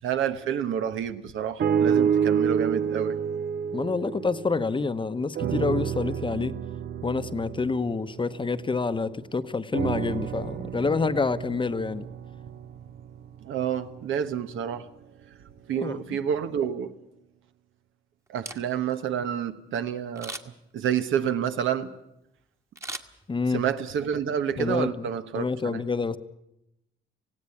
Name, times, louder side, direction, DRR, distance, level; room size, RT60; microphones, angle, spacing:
voice 1, 0.0-3.2 13.4-14.9 15.7-16.9 18.3-21.9 23.5-25.8, right 8 dB, 80° right, 9 dB, 1.3 m, -29 dB
sound 1, 1.6-5.0 5.4-9.1 9.7-13.9 14.6-14.7, right 8 dB, 55° right, 0.8 m, -29 dB
voice 2, 3.7-6.5 7.0-12.1 15.8-16.2 23.3-23.6 24.6-25.1 25.3-26.2, left 4 dB, 25° left, 12 dB, 0.9 m, -27 dB
Camera, 18.3-19.0 20.2-20.7 22.8-23.7 24.1-24.2, right 2 dB, 15° right, 1.4 m, -39 dB
18.5 x 16.5 x 9.8 m, 0.85 s
cardioid pair, 90°, 20 cm